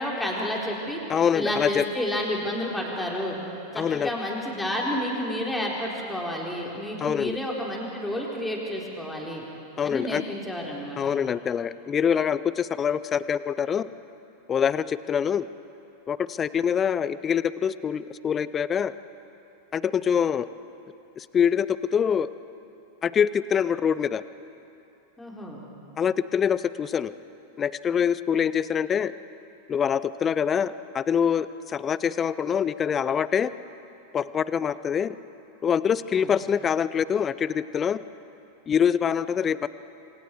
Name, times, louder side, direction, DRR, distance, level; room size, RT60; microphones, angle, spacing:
voice 1, 0.0-1.0 1.3-3.4 3.7-9.4 9.8-11.0 25.2-25.6 36.2-36.3, left 1 dB, 5° left, -2 dB, 4.3 m, -30 dB
voice 2, 1.1-1.8 3.8-4.1 7.0-7.4 9.8-10.2 11.0-13.9 14.5-15.5 16.1-18.9 19.7-20.5 21.2-22.3 23.0-24.2 26.0-27.1 27.6-29.1 29.7-33.5 34.1-35.2 35.6-38.0 38.7-39.7, left 7 dB, 25° left, 16 dB, 0.6 m, -25 dB
27.5 x 26.0 x 4.8 m, 2.9 s
figure-of-eight pair, 90°, 0 cm